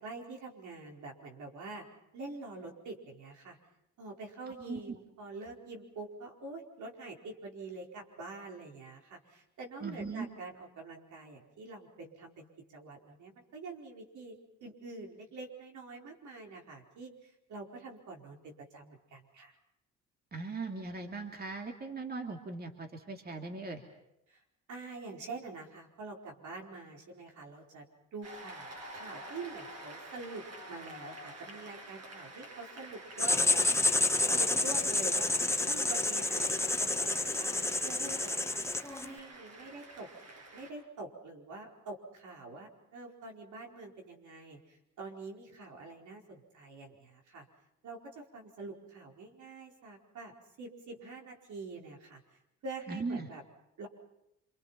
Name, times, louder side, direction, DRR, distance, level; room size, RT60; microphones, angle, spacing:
voice 1, 0.0-1.8 2.1-3.6 4.0-19.6 24.3-24.4 24.7-27.9 28.1-35.3 35.6-38.6 39.0-40.1 40.5-47.4 47.8-50.3 50.6-52.2 52.6-53.4 53.8-53.9, right 3 dB, 75° right, 1 dB, 4.7 m, -46 dB
voice 2, 9.8-10.3 20.3-23.8 52.9-53.3, right 3 dB, 30° right, 3 dB, 2.7 m, -39 dB
Cheering / Applause, 28.2-40.7, right 1 dB, 55° right, 6.9 m, -49 dB
Writing, 33.2-39.1, left 2 dB, 10° left, 1.2 m, -29 dB
27.5 x 24.5 x 5.9 m, 0.84 s
cardioid pair, 90°, 30 cm